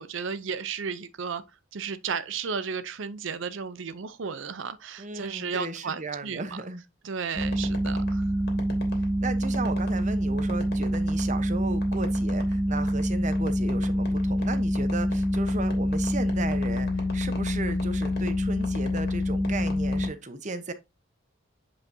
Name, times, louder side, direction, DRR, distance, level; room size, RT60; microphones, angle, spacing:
voice 1, 0.0-1.4 1.7-6.6 7.0-8.3, right 6 dB, 65° right, 0.5 m, -34 dB
voice 2, 5.0-6.8 9.2-20.7, right 3 dB, 35° right, 0.9 m, -35 dB
sound 1, 7.3-20.1, equal, 50° left, 2.4 m, -26 dB
8.3 x 5.3 x 2.7 m
head